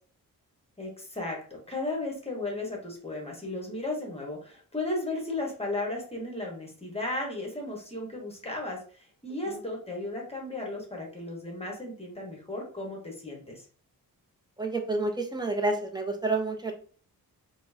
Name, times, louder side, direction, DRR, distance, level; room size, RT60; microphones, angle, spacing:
voice 1, 0.8-13.6, left 2 dB, 15° left, -1 dB, 1.1 m, -35 dB
voice 2, 14.6-16.7, right 2 dB, 10° right, 3 dB, 0.6 m, -29 dB
4.4 x 2.1 x 2.6 m, 0.43 s
cardioid pair, 100°, 36 cm